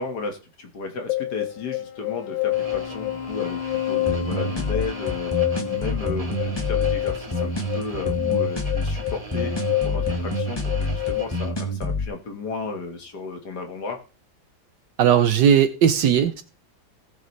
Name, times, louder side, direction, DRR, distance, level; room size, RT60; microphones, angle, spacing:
voice 1, 0.0-3.6 3.9-9.5 9.8-14.0, left 4 dB, 60° left, 2.1 m, -34 dB
sound 1, 1.1-11.2, left 15 dB, 85° left, 1.5 m, -28 dB
sound 2, 2.5-11.5, right 2 dB, 25° right, 1.0 m, -40 dB
sound 3, 4.1-12.1, left 1 dB, 15° left, 1.4 m, -27 dB
voice 2, 15.0-16.4, right 9 dB, 70° right, 1.3 m, -17 dB
19.0 x 6.8 x 3.2 m
omnidirectional pair, 2.0 m